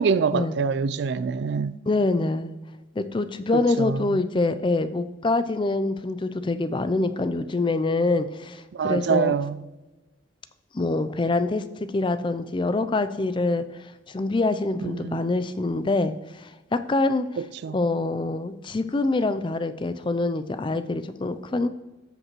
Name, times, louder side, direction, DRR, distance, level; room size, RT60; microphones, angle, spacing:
voice 1, 0.0-1.8 3.5-4.2 8.7-9.6 14.8-15.3 17.4-17.8, right 5 dB, 60° right, 0.3 m, -25 dB
voice 2, 1.9-2.5 3.0-9.4 10.7-11.6 11.9-17.3 17.7-21.7, left 2 dB, 25° left, 0.4 m, -25 dB
14.5 x 5.3 x 3.1 m
head